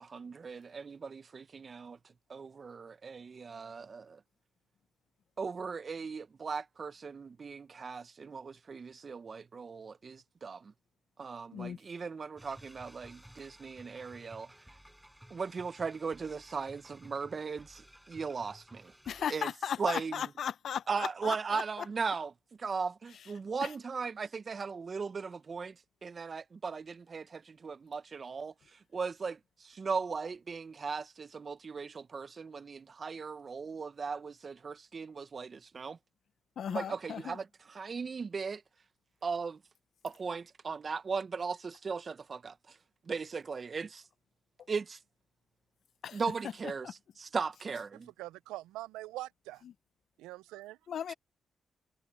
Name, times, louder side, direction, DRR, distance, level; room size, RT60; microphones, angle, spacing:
voice 1, 0.0-2.0 2.3-4.2 5.4-10.7 11.2-14.5 15.3-18.9 19.3-19.5 19.8-20.1 20.9-22.3 22.6-25.7 26.0-36.0 36.7-37.4 37.7-38.6 39.2-39.6 40.0-42.8 43.1-44.0 44.7-45.0 46.1-46.9 47.2-48.1, right 5 dB, 45° right, 1.3 m, -38 dB
sound 1, 12.4-19.3, equal, 5° right, 8.0 m, -56 dB
voice 2, 19.1-21.9 23.1-23.3 23.6-23.7 36.6-37.4 46.0-46.2 46.8-46.9 49.6-49.7 50.9-51.1, left 8 dB, 65° left, 0.8 m, -37 dB
voice 3, 48.2-49.6 50.2-50.8, right 17 dB, 85° right, 0.6 m, -43 dB
supercardioid pair, 50°, 0 cm